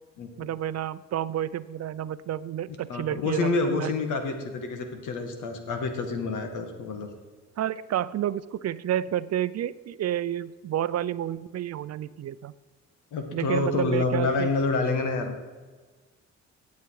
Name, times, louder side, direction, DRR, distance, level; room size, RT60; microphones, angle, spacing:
voice 1, 0.4-3.9 7.6-12.5 13.3-14.5, right 11 dB, 60° right, 16 dB, 0.6 m, -30 dB
voice 2, 2.9-7.1 13.1-15.4, left 3 dB, 80° left, 5 dB, 2.1 m, -28 dB
16.5 x 8.2 x 4.9 m, 1.4 s
cardioid pair, 90°, 30 cm